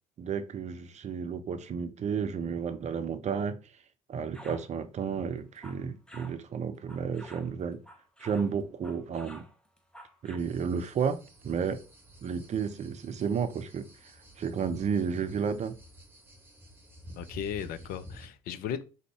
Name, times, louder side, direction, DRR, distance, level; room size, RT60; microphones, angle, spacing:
voice 1, 0.2-3.6 4.1-7.8 8.2-9.4 10.2-11.2 11.4-11.8 12.2-13.9 14.4-15.8, right 6 dB, 40° right, 0.6 m, -32 dB
sound 1, 4.3-4.7 5.4-6.4 6.9-8.5 8.8-10.4, right 1 dB, 5° left, 1.1 m, -50 dB
sound 2, 10.4-18.3, equal, 10° right, 1.5 m, -51 dB
voice 2, 17.2-18.8, left 8 dB, 55° left, 0.6 m, -36 dB
3.9 x 2.7 x 4.6 m
hypercardioid pair, 55°, 18 cm